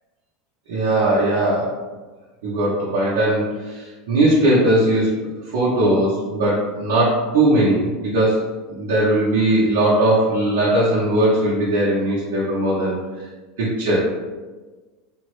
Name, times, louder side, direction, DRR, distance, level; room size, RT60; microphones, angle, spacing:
voice 1, 0.7-1.7 2.4-5.1 5.5-8.4 8.7-13.0 13.6-14.0, right 1 dB, 85° right, -7 dB, 0.8 m, -19 dB
3.6 x 2.0 x 3.0 m, 1.3 s
supercardioid pair, 120°, 0 cm